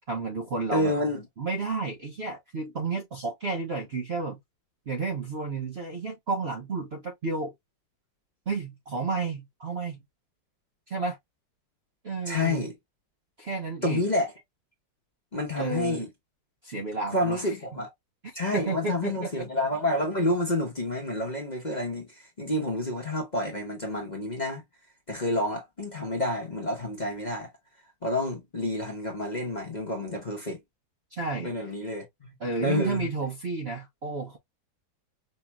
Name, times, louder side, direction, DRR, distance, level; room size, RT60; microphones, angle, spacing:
voice 1, 0.1-0.9 1.4-4.4 4.9-7.5 8.5-10.0 10.9-11.2 12.0-12.7 13.4-14.0 15.6-16.1 16.6-17.4 18.5-19.3 31.1-31.5 32.4-34.4, right 3 dB, 50° right, 0.8 m, -31 dB
voice 2, 0.7-1.2 12.3-12.7 13.8-14.3 15.3-16.1 17.1-17.9 18.3-24.6 25.1-27.5 28.0-30.6 31.4-32.3 32.6-33.1, left 1 dB, 30° left, 1.0 m, -29 dB
5.4 x 2.9 x 2.2 m
omnidirectional pair, 2.0 m